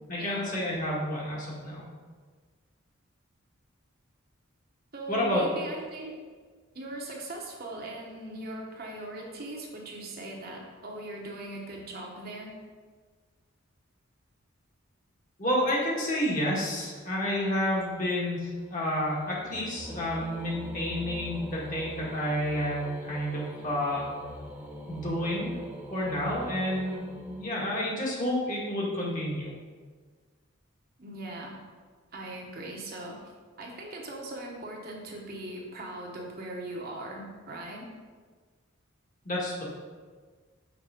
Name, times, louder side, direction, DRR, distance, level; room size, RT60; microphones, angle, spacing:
voice 1, 0.1-1.8 5.1-5.4 15.4-24.1 24.9-25.5 25.9-29.5 39.3-39.6, left 1 dB, 40° left, -5 dB, 1.7 m, -30 dB
voice 2, 4.9-6.2 6.7-12.5 31.0-31.6 32.1-33.3 33.6-37.9, right 1 dB, 45° right, -1 dB, 1.0 m, -39 dB
sound 1, 17.3-28.1, equal, 10° right, 0.6 m, -44 dB
6.0 x 4.5 x 5.0 m, 1.5 s
head